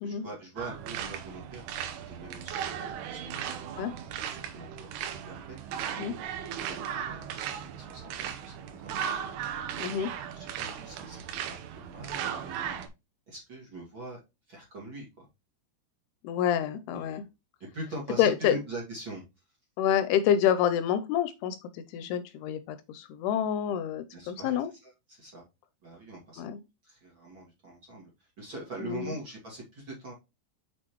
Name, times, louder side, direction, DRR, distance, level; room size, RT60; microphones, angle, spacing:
voice 1, 0.0-3.6 4.3-9.0 10.2-12.9 13.3-14.2 14.5-15.3 16.9-17.2 17.7-19.2 24.1-25.4 25.8-26.4 26.8-30.1, right 1 dB, 35° right, 2.2 m, -43 dB
sound 1, 0.6-12.9, right 8 dB, 80° right, 2.9 m, -37 dB
voice 2, 9.8-10.1 16.2-17.2 18.2-18.6 19.8-24.7 26.4-26.6 28.8-29.1, left 9 dB, 80° left, 2.5 m, -28 dB
6.3 x 6.3 x 3.0 m
omnidirectional pair, 4.9 m